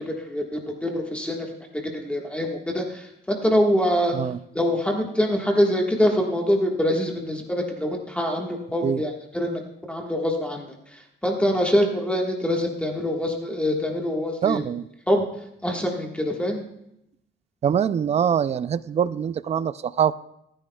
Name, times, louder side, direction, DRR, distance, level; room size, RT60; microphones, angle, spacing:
voice 1, 0.0-0.4 0.8-1.5 1.8-4.2 4.5-9.6 9.9-10.7 11.2-14.6 15.1-15.2 15.6-16.6, equal, 5° left, 0 dB, 1.5 m, -24 dB
voice 2, 14.4-14.9 17.6-20.1, right 8 dB, 35° right, 16 dB, 0.4 m, -23 dB
27.5 x 9.9 x 2.3 m, 0.80 s
cardioid pair, 155°, 19 cm